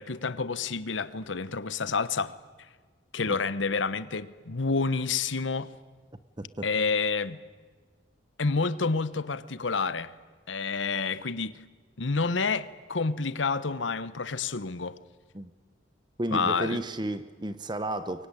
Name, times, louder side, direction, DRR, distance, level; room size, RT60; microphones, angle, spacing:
voice 1, 0.0-2.3 3.1-5.7 6.6-7.4 8.4-10.1 10.5-11.6 12.0-15.0 16.3-16.8, left 4 dB, 80° left, 1.1 m, -29 dB
voice 2, 6.4-6.7 15.3-15.5 16.2-18.3, right 1 dB, 25° right, 1.0 m, -32 dB
23.5 x 23.5 x 10.0 m
head